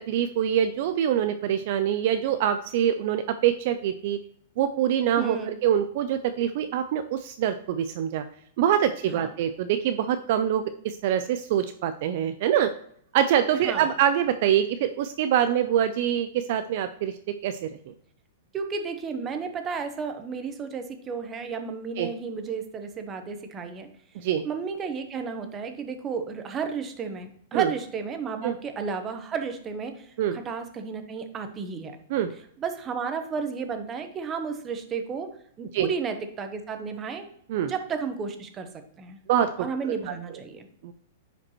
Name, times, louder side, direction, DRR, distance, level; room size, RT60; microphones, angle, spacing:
voice 1, 0.1-4.2 4.6-8.2 8.6-12.7 13.1-17.1 17.4-17.8 22.0-22.1 24.2-24.4 27.5-27.7 28.4-28.5 30.2-30.4 32.1-32.3 35.7-35.9 37.5-37.7 39.3-39.5 40.1-40.2 40.8-40.9, right 10 dB, 45° right, 9 dB, 0.4 m, -24 dB
voice 2, 5.2-5.6 9.0-9.3 13.5-13.9 18.5-23.9 24.4-32.0 32.6-35.3 35.6-37.3 37.6-38.7 39.0-39.2 39.6-40.7, right 5 dB, 20° right, 7 dB, 0.9 m, -33 dB
9.7 x 5.1 x 3.0 m, 0.65 s
supercardioid pair, 160°, 0 cm